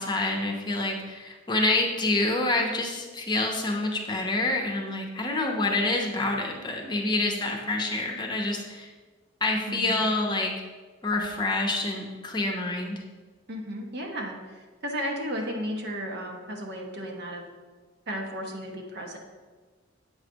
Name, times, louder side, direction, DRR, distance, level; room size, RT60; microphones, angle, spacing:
voice 1, 0.0-8.9 9.4-10.5 11.0-13.0, left 2 dB, 20° left, 1 dB, 0.8 m, -27 dB
voice 2, 9.7-10.0 13.5-17.4 18.1-19.2, equal, 55° right, 1 dB, 1.0 m, -34 dB
7.9 x 3.2 x 6.2 m, 1.4 s
head